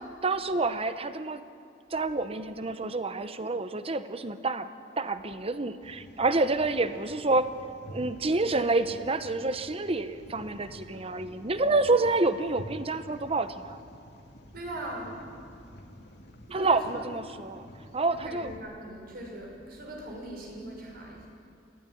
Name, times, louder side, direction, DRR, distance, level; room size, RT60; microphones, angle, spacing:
voice 1, 0.2-1.4 1.9-4.7 5.0-7.5 7.9-13.8 16.5-17.7 17.9-18.5, right 3 dB, 35° right, 11 dB, 1.0 m, -28 dB
sound 1, 5.8-18.6, equal, 65° left, 2.6 m, -49 dB
voice 2, 14.5-15.2 16.5-17.0 18.1-21.3, right 1 dB, 55° right, 0 dB, 6.0 m, -40 dB
23.0 x 16.0 x 9.9 m, 2.4 s
head